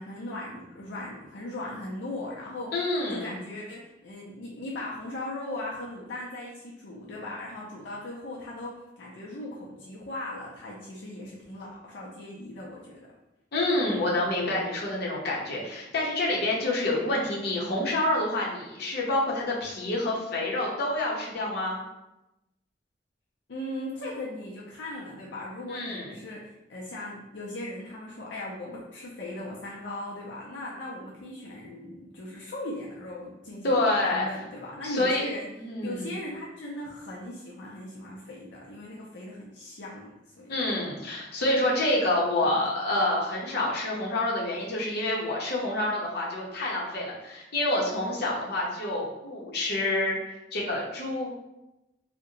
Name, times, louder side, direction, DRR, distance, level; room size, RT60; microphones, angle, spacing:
voice 1, 0.0-2.7 3.1-13.1 23.5-35.5 35.8-40.6 42.4-42.7, left 1 dB, 85° left, -4 dB, 0.5 m, -38 dB
voice 2, 2.7-3.3 13.5-21.8 25.7-26.2 33.6-34.3 34.8-35.3 35.6-36.1 40.5-50.2 50.5-51.3, left 1 dB, 60° left, -4 dB, 0.8 m, -27 dB
2.7 x 2.2 x 3.8 m, 0.94 s
head